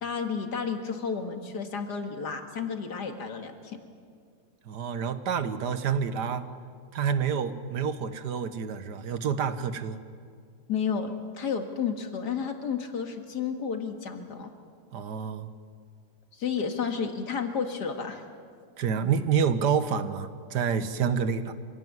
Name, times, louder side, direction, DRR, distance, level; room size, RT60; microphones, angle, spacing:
voice 1, 0.0-3.8 10.7-14.5 16.3-18.2, left 6 dB, 80° left, 5 dB, 2.5 m, -31 dB
voice 2, 4.7-6.5 6.9-10.0 14.9-15.5 18.8-21.5, right 7 dB, 85° right, 11 dB, 1.8 m, -28 dB
26.0 x 17.0 x 9.6 m, 2.2 s
omnidirectional pair, 1.7 m